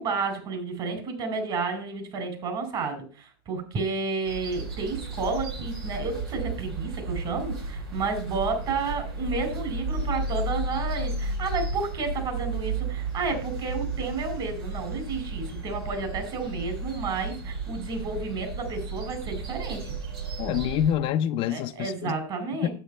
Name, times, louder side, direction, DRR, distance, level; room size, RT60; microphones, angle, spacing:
voice 1, 0.0-19.9 21.5-22.7, right 4 dB, 40° right, 4.5 m, -31 dB
sound 1, 4.2-21.0, right 3 dB, 80° right, 4.7 m, -33 dB
voice 2, 20.4-22.1 22.6-22.7, left 10 dB, 45° left, 0.7 m, -26 dB
9.1 x 8.0 x 5.5 m
hypercardioid pair, 100°, 13 cm